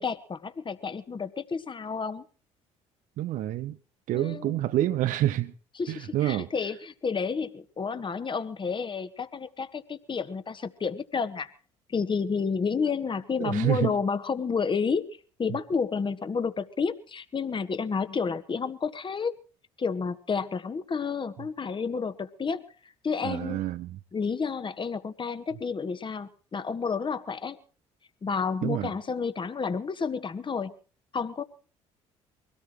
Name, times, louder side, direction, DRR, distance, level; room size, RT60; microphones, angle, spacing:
voice 1, 0.0-2.2 4.1-4.6 5.8-11.5 11.9-15.1 15.4-19.3 19.8-22.6 23.0-23.6 24.1-27.6 28.2-30.7 31.1-31.4, left 5 dB, 30° left, 1.6 m, -30 dB
voice 2, 3.2-3.8 4.1-5.5 5.9-6.5 13.4-13.9 23.2-24.0 28.6-28.9, right 13 dB, 60° right, 0.8 m, -27 dB
23.5 x 17.5 x 3.2 m
hypercardioid pair, 55°, 15 cm